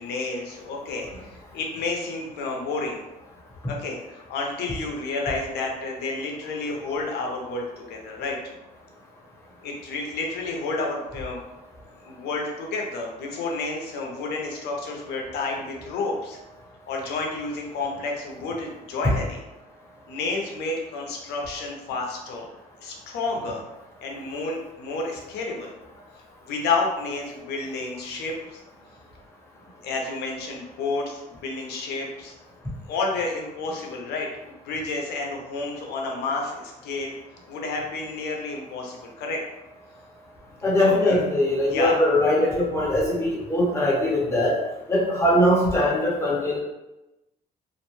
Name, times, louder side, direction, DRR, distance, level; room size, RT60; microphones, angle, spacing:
voice 1, 0.0-3.0 3.7-8.4 9.6-11.4 12.0-16.4 16.9-19.4 20.1-22.5 22.8-23.6 24.0-25.7 26.4-28.6 29.8-32.3 32.9-37.1 37.5-39.4 40.8-41.2 41.7-42.0, left 3 dB, 75° left, 0 dB, 0.7 m, -30 dB
voice 2, 40.6-44.5 44.9-46.6, left 1 dB, 15° left, -4 dB, 0.9 m, -21 dB
2.5 x 2.1 x 3.0 m, 1.0 s
cardioid pair, 110°, 17 cm